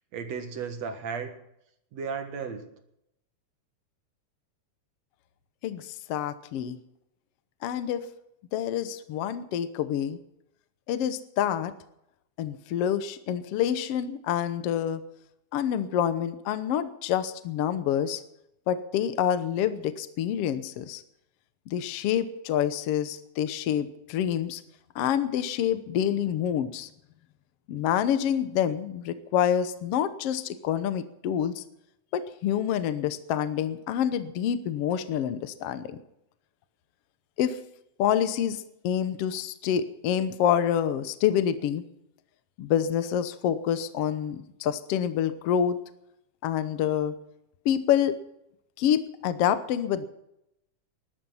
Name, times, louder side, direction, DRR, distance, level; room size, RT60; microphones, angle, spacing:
voice 1, 0.1-1.4 1.9-2.7, right 6 dB, 60° right, 6 dB, 2.6 m, -34 dB
voice 2, 5.6-6.8 7.6-8.1 8.5-10.2 10.9-11.7 12.4-15.0 15.5-18.2 18.7-21.0 21.7-24.6 25.0-26.9 27.7-31.6 32.1-36.0 37.4-37.6 38.0-41.8 42.6-45.8 46.4-47.1 47.7-48.2 48.8-50.1, left 9 dB, 65° left, 11 dB, 1.7 m, -27 dB
20.5 x 12.0 x 5.7 m, 0.80 s
omnidirectional pair, 3.5 m